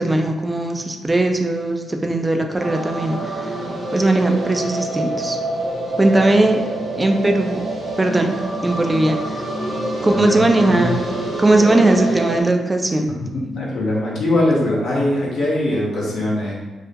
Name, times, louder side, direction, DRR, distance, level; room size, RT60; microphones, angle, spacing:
voice 1, 0.0-3.6 3.9-5.4 6.0-6.6 6.9-7.7 8.0-8.3 8.6-9.5 10.0-11.0 11.4-13.1, right 2 dB, 25° right, 4 dB, 0.3 m, -18 dB
sound 1, 2.6-12.4, right 1 dB, 65° right, 0.8 m, -26 dB
voice 2, 10.0-10.3 10.7-10.9 13.3-16.5, left 1 dB, 70° left, -4 dB, 0.6 m, -21 dB
2.4 x 2.0 x 2.6 m, 1.2 s
hypercardioid pair, 45°, 0 cm